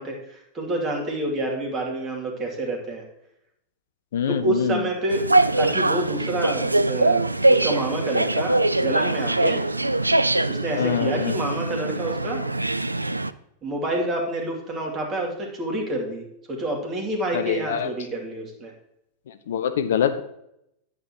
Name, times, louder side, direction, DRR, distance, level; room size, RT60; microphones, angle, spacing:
voice 1, 0.0-3.0 4.3-5.3 5.6-9.6 10.5-12.5 13.6-18.7, right 1 dB, 25° right, 0 dB, 2.6 m, -28 dB
voice 2, 4.1-4.9 10.7-11.3 17.3-17.9 19.3-20.2, left 8 dB, 60° left, 11 dB, 0.6 m, -25 dB
sound 1, 5.1-13.3, right 2 dB, 85° right, 0.3 m, -22 dB
10.0 x 8.5 x 3.0 m, 0.79 s
figure-of-eight pair, 90°, 0 cm